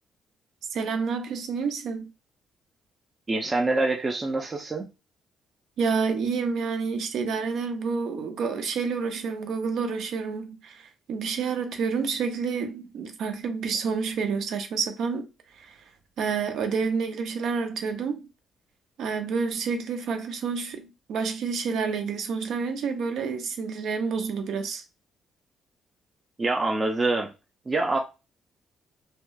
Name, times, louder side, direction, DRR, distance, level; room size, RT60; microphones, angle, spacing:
voice 1, 0.7-2.1 5.8-15.3 15.5-15.8 16.2-18.3 19.0-24.8, right 5 dB, 75° right, 0.5 m, -29 dB
voice 2, 3.3-4.8 26.4-27.3 27.7-28.0, right 2 dB, 25° right, 0.4 m, -25 dB
2.8 x 2.1 x 2.3 m
cardioid pair, 90°, 0 cm